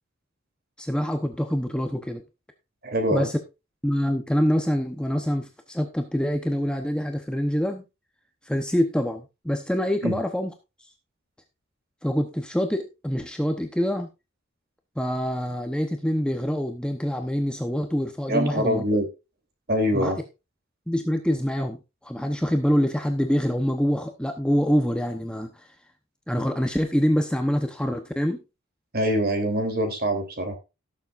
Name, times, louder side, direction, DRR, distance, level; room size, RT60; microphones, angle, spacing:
voice 1, 0.8-2.2 3.1-3.4 3.8-7.8 8.4-10.5 12.0-14.1 15.0-18.8 19.9-20.1 20.9-25.7 26.3-28.4, equal, 5° left, 5 dB, 0.9 m, -25 dB
voice 2, 2.8-3.3 10.0-10.2 18.3-19.0 19.7-20.2 28.9-30.6, equal, 45° right, 5 dB, 3.2 m, -24 dB
17.5 x 7.2 x 2.5 m, 0.26 s
head